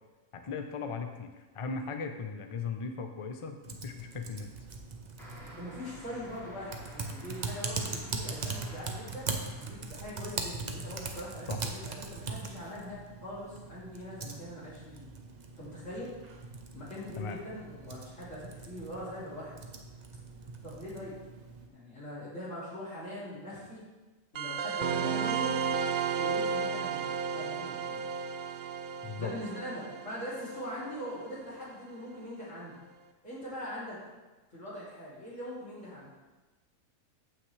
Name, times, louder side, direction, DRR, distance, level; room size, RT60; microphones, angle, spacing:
voice 1, 0.3-4.5 11.5-11.6 17.2-17.4 29.0-29.3, left 5 dB, 30° left, 5 dB, 0.6 m, -37 dB
Typing, 3.6-21.7, right 4 dB, 40° right, 0.7 m, -41 dB
sound 1, 5.2-10.2 10.9-11.5, equal, ahead, 3.0 m, -52 dB
voice 2, 5.5-15.0 15.6-16.2 16.7-19.5 20.6-21.1 21.7-23.8 24.3-25.6 26.1-28.1 29.2-32.8 33.2-34.0 34.5-36.1, left 1 dB, 55° left, -11 dB, 3.2 m, -42 dB
sound 2, 24.3-31.4, right 6 dB, 70° right, 0.4 m, -33 dB
14.5 x 5.9 x 3.3 m, 1.2 s
omnidirectional pair, 1.5 m